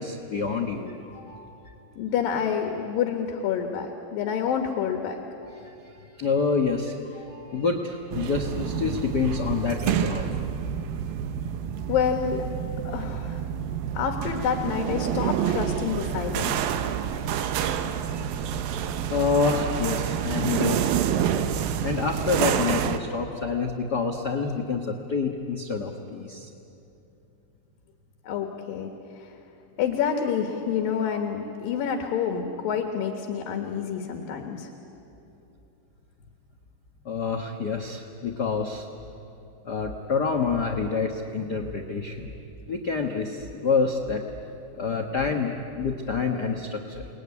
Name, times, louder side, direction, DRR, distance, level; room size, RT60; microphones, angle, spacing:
voice 1, 0.0-1.6 5.5-10.4 19.1-21.2 21.8-26.5 37.0-38.9 39.6-42.3 42.7-44.2 44.8-47.1, left 5 dB, 60° left, 2 dB, 1.0 m, -27 dB
voice 2, 2.0-5.2 11.9-12.4 12.8-13.4 13.9-16.6 28.2-28.9 29.2-29.3 29.8-34.7, left 7 dB, 80° left, 4 dB, 3.2 m, -28 dB
sound 1, 8.1-23.0, right 9 dB, 85° right, 2.8 m, -28 dB
29.5 x 20.5 x 9.7 m, 2.8 s
omnidirectional pair, 4.1 m